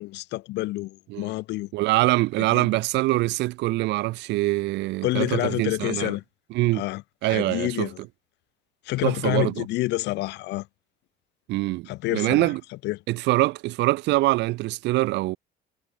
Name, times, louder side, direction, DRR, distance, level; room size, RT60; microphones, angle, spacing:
voice 1, 0.0-1.7 2.4-2.7 5.0-6.2 6.7-8.0 8.9-10.7 11.9-12.5 12.8-13.0, left 19 dB, 75° left, 0.8 m, -28 dB
voice 2, 1.7-6.2 6.5-6.8 7.2-7.9 9.0-9.7 11.5-12.6 13.1-15.4, right 19 dB, 80° right, 1.0 m, -24 dB
cardioid pair, 150°, 18 cm